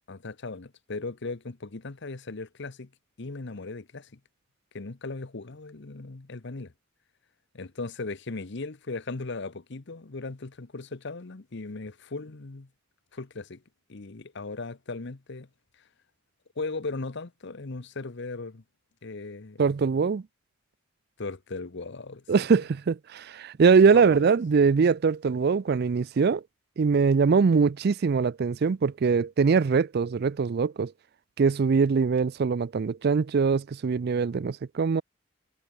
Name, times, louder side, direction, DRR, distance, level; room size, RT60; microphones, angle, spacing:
voice 1, 0.1-2.9 3.2-4.2 4.7-6.7 7.5-12.7 13.1-13.6 13.9-15.5 16.6-18.6 19.0-19.6 21.2-22.2 23.9-24.3, left 3 dB, 60° left, 1.0 m, -37 dB
voice 2, 19.6-20.2 22.3-26.4 26.8-30.9 31.4-35.0, right 5 dB, 50° right, 0.4 m, -22 dB
head